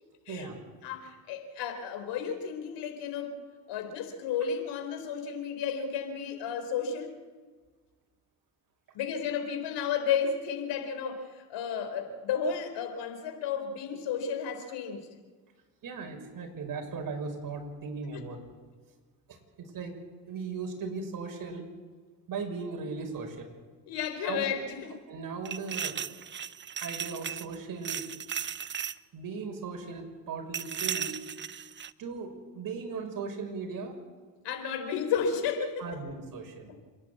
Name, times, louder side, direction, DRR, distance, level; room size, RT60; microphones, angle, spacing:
voice 1, 0.3-0.6 15.8-18.4 19.3-19.9 20.3-21.7 22.3-23.5 24.2-24.5 25.1-25.9 26.8-28.0 29.1-31.2 32.0-33.9 35.8-36.7, right 4 dB, 50° right, 3 dB, 6.2 m, -37 dB
voice 2, 0.8-3.4 3.7-7.2 8.9-15.1 18.1-18.2 23.9-25.0 34.4-36.0 36.7-36.8, left 7 dB, 70° left, 7 dB, 4.1 m, -32 dB
sound 1, 25.4-27.6 27.8-29.0 30.5-31.9, right 8 dB, 25° right, 0.7 m, -36 dB
28.0 x 11.0 x 8.5 m, 1.5 s
supercardioid pair, 80°, 44 cm